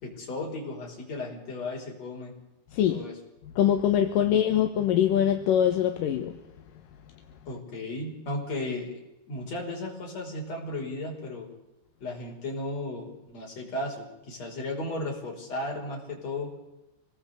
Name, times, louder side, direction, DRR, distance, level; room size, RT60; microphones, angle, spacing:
voice 1, 0.0-2.3 2.9-3.2 7.5-9.0 9.3-11.5 12.0-16.5, left 2 dB, 50° left, 6.6 m, -35 dB
voice 2, 2.7-3.0 3.6-6.3, left 10 dB, 80° left, 2.8 m, -23 dB
26.0 x 19.5 x 8.3 m
omnidirectional pair, 3.8 m